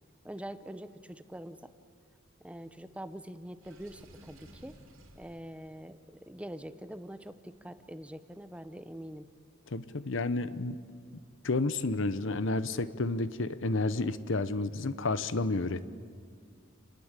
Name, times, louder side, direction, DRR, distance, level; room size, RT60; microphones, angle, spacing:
voice 1, 0.2-1.7 2.4-4.7 5.2-9.3, right 1 dB, 5° right, 12 dB, 0.8 m, -44 dB
Water / Sink (filling or washing), 3.6-5.4, right 1 dB, 85° right, 3.9 m, -54 dB
voice 2, 9.7-10.8 11.4-15.9, left 2 dB, 70° left, 14 dB, 1.0 m, -31 dB
28.5 x 20.0 x 8.3 m, 2.2 s
head